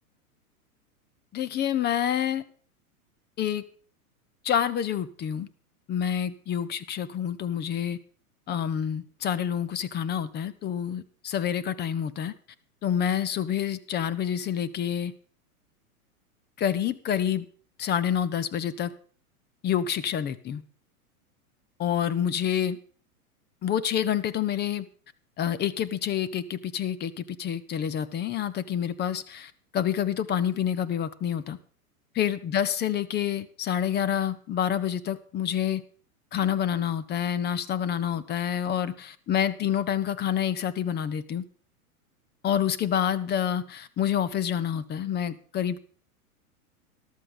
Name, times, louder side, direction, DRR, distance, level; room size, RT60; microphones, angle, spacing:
voice 1, 1.3-2.4 3.4-3.6 4.4-5.5 5.9-8.0 8.5-12.3 12.8-15.1 16.6-17.5 17.8-18.9 19.6-20.6 21.8-22.8 23.6-24.9 25.4-31.6 32.1-35.8 36.3-41.4 42.4-45.8, left 9 dB, 25° left, 0.8 m, -28 dB
13.5 x 12.0 x 3.8 m
hypercardioid pair, 110°, 44 cm